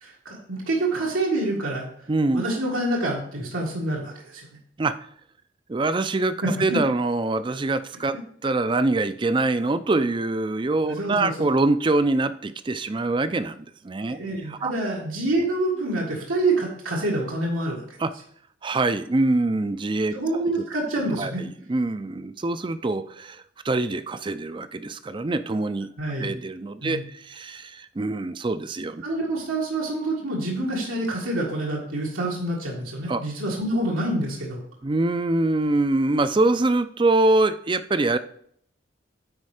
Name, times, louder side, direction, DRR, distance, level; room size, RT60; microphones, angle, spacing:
voice 1, 0.0-1.9 2.3-4.5 6.4-6.8 10.9-11.3 14.1-18.0 20.1-21.4 26.0-26.3 26.8-27.0 29.0-34.6, right 2 dB, 90° right, -3 dB, 1.8 m, -27 dB
voice 2, 2.1-2.4 4.8-5.0 5.7-14.2 14.5-14.7 18.0-18.1 18.6-20.2 21.2-25.9 26.2-29.0 33.1-33.2 34.8-38.2, right 2 dB, 25° right, 13 dB, 0.4 m, -24 dB
9.6 x 4.4 x 4.9 m, 0.65 s
head